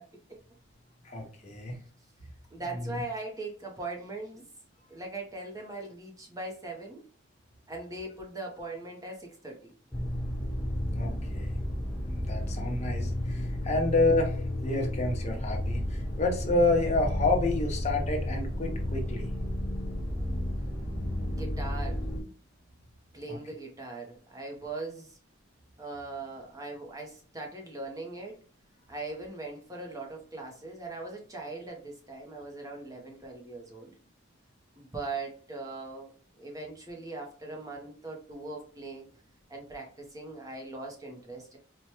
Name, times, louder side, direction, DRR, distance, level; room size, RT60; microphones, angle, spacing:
voice 1, 1.0-1.7 2.7-2.9 10.9-11.5 12.2-19.3, left 2 dB, 35° left, 2 dB, 0.7 m, -29 dB
voice 2, 2.5-4.4 4.9-7.0 7.7-9.7 12.4-12.8 21.2-22.0 23.1-25.2 25.8-28.4 28.9-33.9 34.8-36.1 36.4-39.1 39.5-41.6, right 2 dB, 15° right, 0 dB, 0.6 m, -40 dB
sound 1, 9.9-22.2, left 1 dB, 15° left, 1.3 m, -32 dB
4.4 x 2.2 x 2.9 m, 0.40 s
head